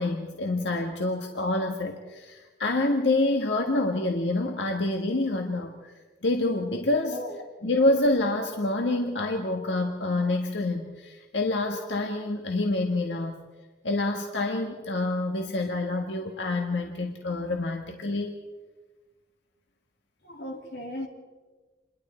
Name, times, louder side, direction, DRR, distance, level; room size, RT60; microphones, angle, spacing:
voice 1, 0.0-5.9 6.2-7.2 7.6-13.4 13.8-18.4, left 2 dB, 90° left, 3 dB, 1.6 m, -27 dB
voice 2, 20.2-21.1, left 1 dB, 65° left, 2 dB, 2.9 m, -36 dB
27.5 x 21.5 x 4.4 m, 1.3 s
head